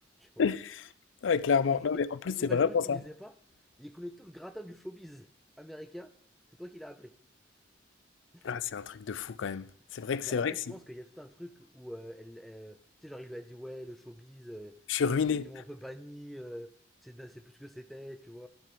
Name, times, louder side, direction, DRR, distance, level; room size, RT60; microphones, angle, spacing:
voice 1, 0.4-0.8 1.2-3.0 8.4-10.5 14.9-15.5, left 6 dB, 80° left, 0.4 m, -29 dB
voice 2, 1.7-3.3 3.8-5.3 5.6-6.1 6.5-7.1 8.3-8.5 10.2-14.8 15.2-16.7 17.0-18.5, equal, ahead, 0.4 m, -45 dB
10.5 x 4.5 x 6.7 m
head